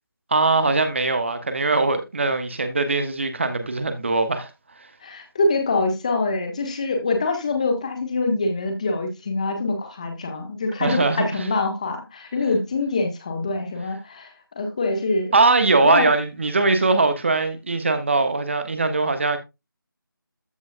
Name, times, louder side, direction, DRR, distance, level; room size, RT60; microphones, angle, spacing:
voice 1, 0.3-4.5 10.8-11.4 15.3-19.4, right 3 dB, 30° right, 1.2 m, -21 dB
voice 2, 5.0-15.3 15.8-16.1, left 3 dB, 20° left, 1.3 m, -25 dB
14.0 x 5.2 x 2.2 m
figure-of-eight pair, 170°, 12 cm